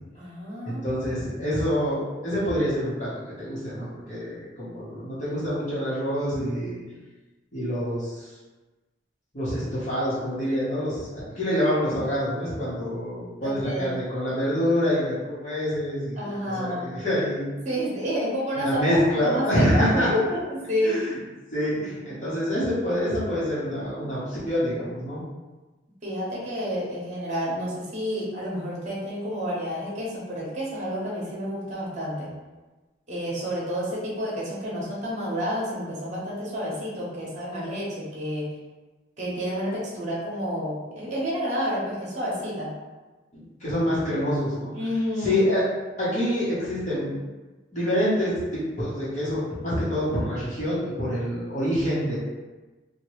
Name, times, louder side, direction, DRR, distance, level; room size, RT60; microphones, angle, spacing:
voice 1, 0.1-0.8 13.4-14.0 16.2-16.9 17.6-21.3 26.0-32.3 33.1-38.5 39.2-42.7 44.7-45.4, equal, 40° right, -5 dB, 1.0 m, -29 dB
voice 2, 0.6-3.1 3.4-6.8 7.5-8.3 9.3-17.5 18.5-20.1 20.8-21.2 21.5-25.2 43.3-44.7 45.2-45.6 46.0-47.2 47.7-52.2, equal, 40° left, -10 dB, 1.1 m, -26 dB
2.9 x 2.4 x 3.1 m, 1.2 s
head